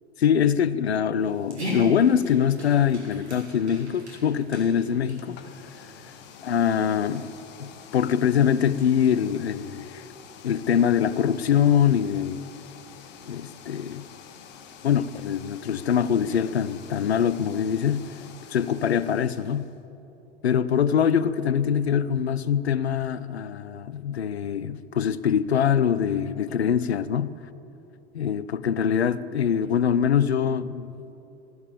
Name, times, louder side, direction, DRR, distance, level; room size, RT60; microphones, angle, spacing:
voice 1, 0.2-5.4 6.5-7.3 7.6-10.0 10.4-12.4 13.3-14.0 14.8-18.1 18.5-19.7 20.4-27.3 28.1-31.1, left 8 dB, 75° left, 0.6 m, -23 dB
Dog, 1.2-6.5, equal, 80° right, 3.4 m, -38 dB
sound 1, 5.1-19.8, left 7 dB, 35° left, 1.0 m, -47 dB
14.0 x 11.0 x 6.9 m
figure-of-eight pair, 90°, 32 cm